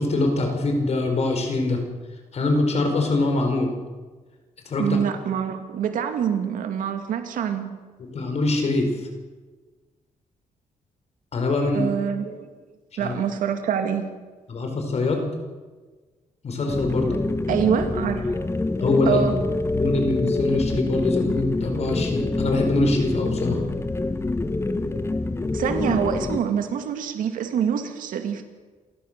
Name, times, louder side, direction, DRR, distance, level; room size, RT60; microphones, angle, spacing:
voice 1, 0.0-1.8 2.3-3.7 4.7-4.9 8.1-8.9 11.3-11.9 13.0-13.1 14.5-15.3 16.4-17.1 18.8-19.2 19.7-23.6, left 2 dB, 50° left, 4 dB, 4.8 m, -23 dB
voice 2, 4.8-7.7 11.7-12.5 13.0-14.1 17.5-18.4 19.1-19.4 25.5-28.5, right 8 dB, 90° right, 7 dB, 2.2 m, -25 dB
sound 1, 16.7-26.4, left 2 dB, 20° left, 1.2 m, -26 dB
28.0 x 14.0 x 6.7 m, 1.4 s
cardioid pair, 110°, 14 cm